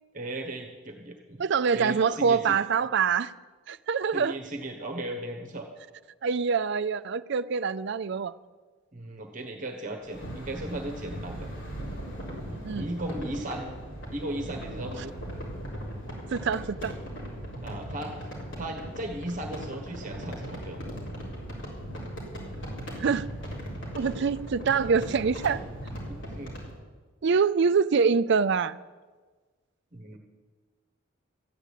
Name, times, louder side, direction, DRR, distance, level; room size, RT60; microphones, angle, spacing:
voice 1, 0.1-1.4 1.7-2.5 4.1-5.7 8.9-11.5 12.5-13.8 14.1-15.1 17.6-20.8 26.3-26.6 29.9-30.2, right 1 dB, 40° right, 3 dB, 1.2 m, -36 dB
voice 2, 1.4-3.3 3.7-4.3 6.2-8.3 12.6-12.9 16.3-16.9 23.0-23.3 23.9-25.6 27.2-28.8, right 5 dB, 60° right, 13 dB, 0.4 m, -25 dB
sound 1, 10.0-26.7, equal, 65° left, 4.2 m, -38 dB
14.0 x 9.1 x 8.3 m, 1.4 s
head